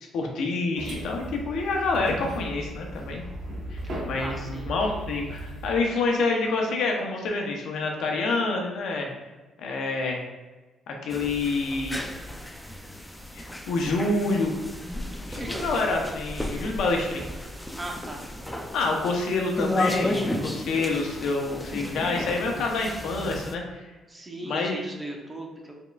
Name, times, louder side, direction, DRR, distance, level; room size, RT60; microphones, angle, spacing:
voice 1, 0.1-3.2 3.7-9.1 9.6-10.2 10.9-12.0 13.3-14.5 15.4-17.2 18.7-23.9 24.4-24.9, left 3 dB, 75° left, 1 dB, 0.8 m, -27 dB
sound 1, 0.8-5.8, right 1 dB, 55° right, 1.2 m, -36 dB
voice 2, 4.2-4.7 15.4-15.8 17.8-18.2 24.1-25.7, right 1 dB, 20° right, 1 dB, 0.7 m, -37 dB
sound 2, 11.1-23.5, left 1 dB, 5° left, 0.4 m, -33 dB
4.6 x 3.6 x 2.4 m, 1.2 s
cardioid pair, 105°, 0 cm